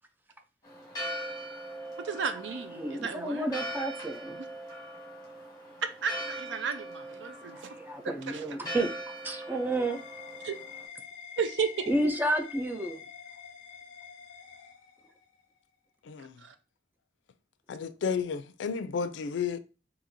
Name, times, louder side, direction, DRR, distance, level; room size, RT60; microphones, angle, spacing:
Church bell, 0.6-10.8, right 1 dB, 20° left, 1.3 m, -41 dB
voice 1, 2.0-3.5 5.8-7.6 8.3-8.4 10.4-10.6 11.4-11.9 16.4-16.5, right 6 dB, 85° right, 0.5 m, -33 dB
voice 2, 2.8-4.4 7.5-10.0 11.9-13.0, right 1 dB, 10° right, 0.4 m, -31 dB
sound 1, 9.0-15.4, left 7 dB, 45° left, 0.7 m, -47 dB
voice 3, 16.0-16.4 17.7-19.6, left 6 dB, 80° left, 0.4 m, -32 dB
4.2 x 2.8 x 2.6 m
head